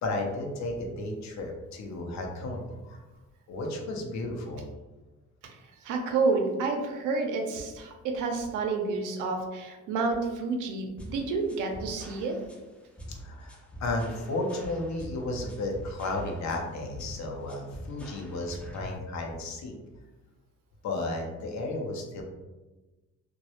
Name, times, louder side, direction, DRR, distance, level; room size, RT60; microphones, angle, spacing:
voice 1, 0.0-3.0 3.5-4.7 13.1-19.7 20.8-22.2, left 2 dB, 65° left, 1 dB, 0.6 m, -33 dB
voice 2, 5.4-12.4, right 4 dB, 80° right, 3 dB, 0.5 m, -29 dB
sound 1, 11.0-19.0, equal, 5° left, 0.3 m, -44 dB
2.2 x 2.0 x 2.8 m, 1.1 s
cardioid pair, 90°, 30 cm